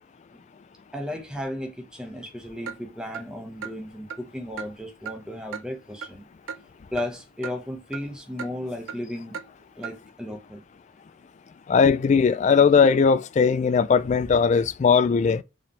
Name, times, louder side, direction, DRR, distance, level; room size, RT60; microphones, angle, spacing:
voice 1, 0.9-6.3 6.9-9.4 9.8-10.6, left 1 dB, 5° right, 1.0 m, -34 dB
Clock, 2.7-2.8 3.1-3.2 3.6-3.7 4.1-4.2 4.6-4.7 5.0-5.2 5.5-5.6 6.0-6.1 6.5-6.6 7.0-7.1 7.4-7.5 7.9-8.0 8.4-8.5 8.9-9.0 9.3-9.5 9.8-9.9, right 6 dB, 80° right, 0.6 m, -35 dB
voice 2, 11.7-15.4, left 5 dB, 35° left, 0.3 m, -19 dB
4.6 x 3.6 x 3.1 m
head